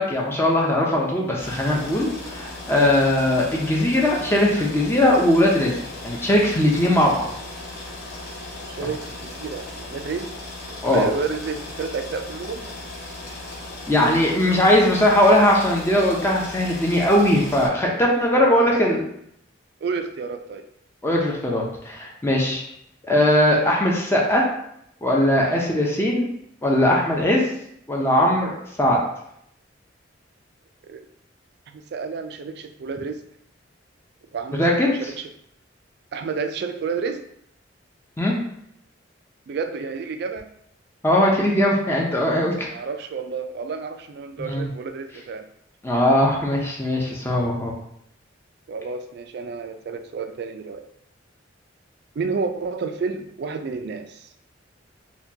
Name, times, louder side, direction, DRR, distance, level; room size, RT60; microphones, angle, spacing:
voice 1, 0.0-5.7 6.0-7.3 8.8-8.9 10.8-11.0 13.9-19.0 21.0-22.6 23.1-24.5 25.0-26.3 26.6-27.5 27.9-28.5 28.8-29.0 34.6-34.9 38.2-38.4 41.0-42.7 44.5-44.7 45.8-47.7, left 1 dB, 15° left, -2 dB, 0.5 m, -19 dB
sound 1, 1.4-17.7, left 2 dB, 55° left, 1.0 m, -37 dB
voice 2, 8.7-10.3 10.9-12.7 18.3-18.9 19.8-20.6 30.9-31.1 31.7-33.2 34.3-35.3 36.1-37.2 39.5-40.5 42.7-45.5 48.7-50.9 52.2-54.3, right 5 dB, 55° right, 7 dB, 0.3 m, -30 dB
4.2 x 2.2 x 2.7 m, 0.73 s
head